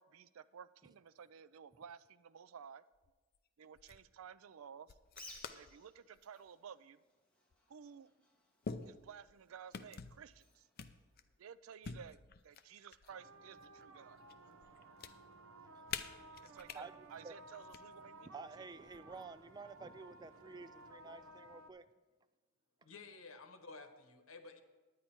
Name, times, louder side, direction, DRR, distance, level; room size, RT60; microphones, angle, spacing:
voice 1, 0.0-2.8 3.6-4.9 5.5-7.0 7.7-8.1 8.8-10.7 11.4-12.2 12.4-14.2 16.4-18.5, right 7 dB, 90° right, 17 dB, 0.4 m, -54 dB
sound 1, 2.9-3.4 3.8-4.1 4.9-5.7 6.1-6.5 7.5-7.6 8.6-9.4 9.7-10.2 10.8-11.4 11.8-13.2 13.6-14.3 14.6-15.1 15.9-16.8 17.5-17.8 18.8-19.4, left 5 dB, 50° left, 0.5 m, -47 dB
Bird, 5.0-11.7, left 2 dB, 5° left, 1.8 m, -61 dB
sound 2, 13.1-21.7, right 2 dB, 70° right, 0.8 m, -57 dB
voice 2, 16.7-17.3 18.3-21.8, right 4 dB, 20° right, 13 dB, 0.3 m, -51 dB
voice 3, 22.8-24.6, left 4 dB, 80° left, 7 dB, 1.2 m, -53 dB
10.5 x 9.5 x 4.4 m, 1.3 s
head